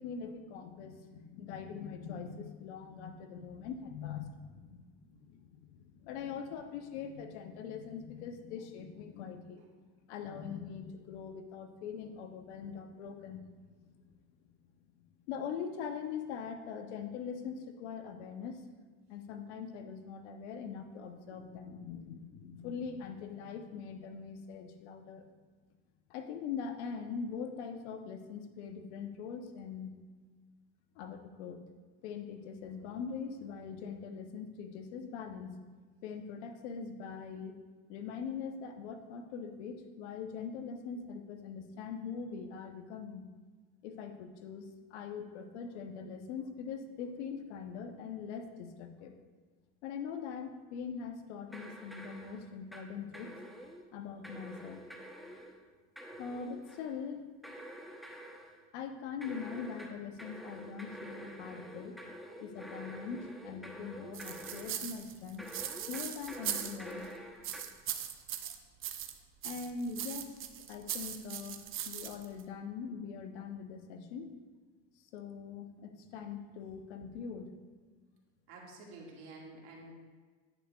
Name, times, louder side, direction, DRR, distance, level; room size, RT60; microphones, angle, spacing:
voice 1, 0.0-9.6 10.1-13.4 13.8-14.1 15.3-18.6 19.1-25.2 26.1-29.9 31.0-31.6 32.0-35.6 36.0-37.6 37.9-43.3 43.8-49.1 49.8-53.3 53.9-54.8 56.2-57.3 58.7-62.0 62.4-65.5 65.9-67.1 68.5-68.6 69.4-70.4 70.7-71.6 71.9-74.3 75.1-77.5, left 6 dB, 80° left, 7 dB, 1.0 m, -42 dB
sound 1, 51.5-52.9 53.1-53.9 54.2-55.6 56.0-57.0 57.4-58.6 59.2-64.9 65.4-67.6, equal, ahead, 0.9 m, -48 dB
sound 2, 64.1-67.0 67.4-69.2 69.4-72.4, right 10 dB, 40° right, 0.7 m, -40 dB
voice 2, 78.5-79.9, right 2 dB, 75° right, -1 dB, 2.1 m, -50 dB
10.0 x 8.0 x 2.4 m, 1.4 s
supercardioid pair, 100°, 34 cm